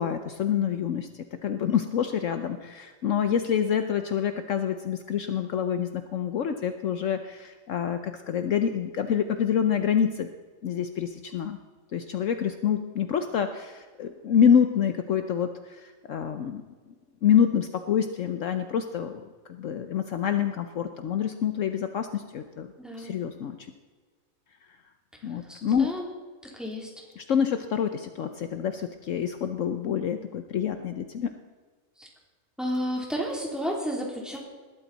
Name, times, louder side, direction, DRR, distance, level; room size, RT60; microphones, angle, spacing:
voice 1, 0.0-10.3 10.6-11.6 11.9-16.6 17.2-19.2 19.5-22.7 23.0-23.7 25.2-25.9 27.2-31.4, left 8 dB, 65° left, 8 dB, 1.1 m, -27 dB
voice 2, 22.8-23.2 25.5-26.1 26.5-26.9 32.0-32.1 32.6-34.4, equal, ahead, -1 dB, 3.2 m, -32 dB
20.0 x 13.0 x 4.1 m, 1.4 s
omnidirectional pair, 1.5 m